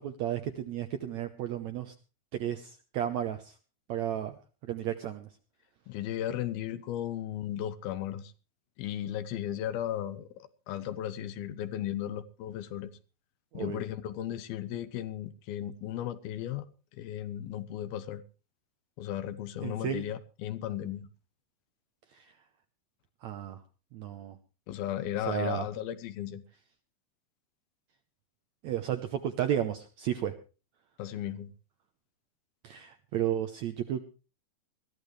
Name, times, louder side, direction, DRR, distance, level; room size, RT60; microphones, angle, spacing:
voice 1, 0.0-1.9 2.3-3.5 3.9-5.3 13.5-13.8 19.6-20.1 22.1-22.3 23.2-23.6 23.9-24.4 25.3-25.6 28.6-30.3 32.6-34.0, right 10 dB, 75° right, 1.7 m, -33 dB
voice 2, 5.9-8.3 8.8-12.9 13.5-16.7 17.0-18.2 19.0-21.1 24.7-26.4 31.0-31.5, left 11 dB, 85° left, 2.9 m, -35 dB
21.5 x 14.0 x 3.2 m
omnidirectional pair, 4.3 m